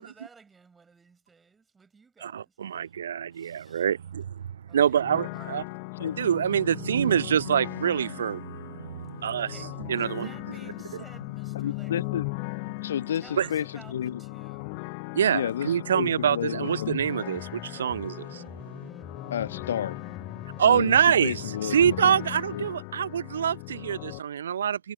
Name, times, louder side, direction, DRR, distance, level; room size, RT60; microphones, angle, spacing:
voice 1, 0.0-3.0 3.3-4.1 4.7-5.0 5.3-5.6 9.1-11.9 13.1-14.9, right 5 dB, 15° right, 5.8 m, -54 dB
voice 2, 2.2-4.3 4.7-5.6 6.2-9.5 9.9-10.3 13.4-13.5 15.1-18.4 18.7-18.8 20.6-21.4 21.7-24.9, right 8 dB, 65° right, 0.3 m, -25 dB
sound 1, 5.0-24.2, left 35 dB, 45° left, 0.4 m, -38 dB
voice 3, 11.5-12.3 12.8-14.2 15.3-16.9 19.3-20.0 20.6-22.2 22.5-22.7, left 9 dB, 65° left, 1.2 m, -31 dB
sound 2, 17.0-22.7, left 4 dB, 15° left, 2.8 m, -45 dB
figure-of-eight pair, 90°, 0 cm